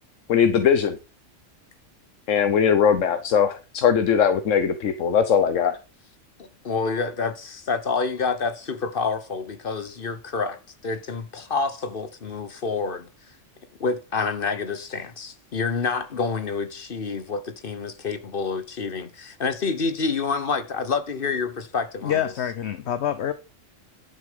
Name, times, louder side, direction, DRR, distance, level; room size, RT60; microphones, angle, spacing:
voice 1, 0.3-1.0 2.3-5.8, left 7 dB, 90° left, 1.3 m, -20 dB
voice 2, 6.4-13.1 13.8-22.3, left 4 dB, 50° left, 1.2 m, -28 dB
voice 3, 22.0-23.3, left 10 dB, 65° left, 1.0 m, -26 dB
11.0 x 6.7 x 5.2 m
omnidirectional pair, 1.3 m